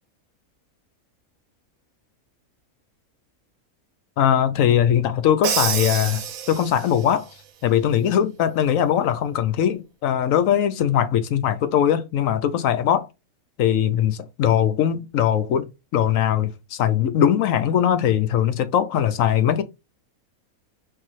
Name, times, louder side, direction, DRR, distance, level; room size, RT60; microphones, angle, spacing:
voice 1, 4.2-7.3 7.6-13.1 13.6-19.6, left 10 dB, 70° left, 1.0 m, -21 dB
Crash cymbal, 5.4-7.1, right 9 dB, 75° right, 1.1 m, -27 dB
4.7 x 3.3 x 3.0 m
omnidirectional pair, 1.5 m